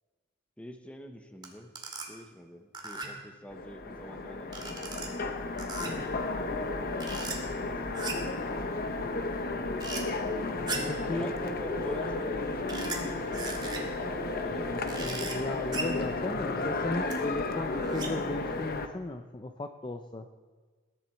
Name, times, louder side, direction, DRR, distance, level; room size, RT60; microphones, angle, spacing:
voice 1, 0.6-1.7 2.1-5.3 7.4-8.1 11.1-14.7, equal, 5° left, 6 dB, 1.0 m, -46 dB
sound 1, 1.4-1.5 1.8-2.1 2.7-3.3 4.5-5.1 5.6-6.1 7.0-7.3 7.9-8.4 9.8-10.0 10.7-11.0 12.7-13.0 13.3-14.0 14.9-15.4 15.7-16.0 17.1-17.2 17.7-18.3, right 3 dB, 20° right, 2.1 m, -38 dB
Train, 3.5-18.9, left 3 dB, 45° left, 0.8 m, -33 dB
sound 2, 7.6-12.5 12.8-16.8, left 1 dB, 65° right, 3.4 m, -43 dB
voice 2, 10.9-11.4 15.0-20.3, left 2 dB, 20° left, 6 dB, 0.5 m, -36 dB
20.0 x 11.0 x 4.5 m, 1.4 s
head